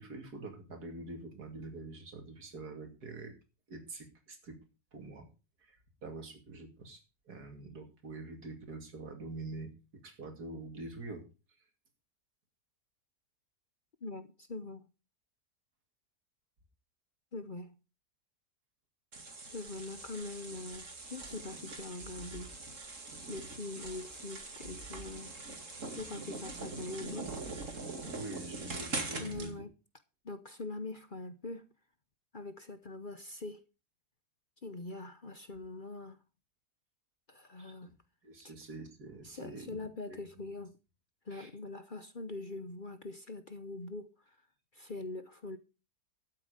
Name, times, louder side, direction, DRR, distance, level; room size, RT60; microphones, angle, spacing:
voice 1, 0.0-3.3 3.7-4.6 4.9-5.3 5.6-11.2 28.1-29.6 37.6-37.9 38.2-40.2 41.3-41.5, right 3 dB, 80° right, 3.0 m, -45 dB
voice 2, 14.0-14.9 17.3-17.8 19.5-22.6 23.3-25.4 25.9-27.5 29.2-29.7 30.2-31.7 32.3-33.6 34.6-36.2 37.3-37.9 38.4-38.5 39.2-40.7 41.2-44.4 44.7-45.6, left 2 dB, 40° left, 0.9 m, -43 dB
sound 1, 19.1-29.5, right 3 dB, 50° right, 2.6 m, -43 dB
12.0 x 8.8 x 5.1 m
omnidirectional pair, 1.7 m